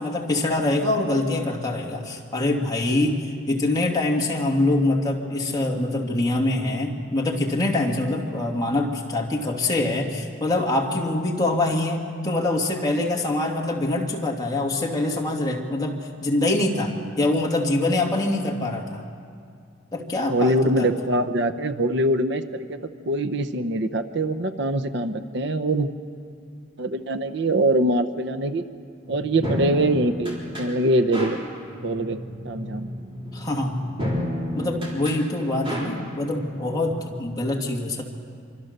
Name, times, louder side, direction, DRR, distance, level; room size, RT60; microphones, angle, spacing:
voice 1, 0.0-19.0 19.9-20.9 33.3-33.8 34.6-38.0, left 2 dB, 20° left, -1 dB, 2.3 m, -24 dB
voice 2, 20.3-22.8 23.1-25.9 26.8-28.6 29.1-31.4 31.8-32.2 32.4-32.9, right 1 dB, 60° right, 10 dB, 0.8 m, -23 dB
sound 1, 29.0-37.1, equal, 25° right, 4.1 m, -32 dB
25.5 x 25.0 x 6.7 m, 2.3 s
head